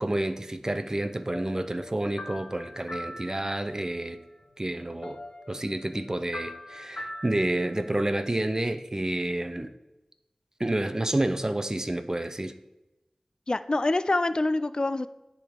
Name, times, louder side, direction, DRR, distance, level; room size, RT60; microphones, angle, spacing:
voice 1, 0.0-4.2 4.6-5.2 5.5-9.7 10.6-12.5, right 1 dB, 30° right, 10 dB, 0.5 m, -29 dB
sound 1, 1.2-4.0 4.4-4.5 4.8-8.2, left 1 dB, 65° left, 0.8 m, -42 dB
voice 2, 13.5-15.1, left 2 dB, 40° left, 13 dB, 0.3 m, -25 dB
9.8 x 3.7 x 5.1 m, 0.99 s
wide cardioid pair, 55°, 2 cm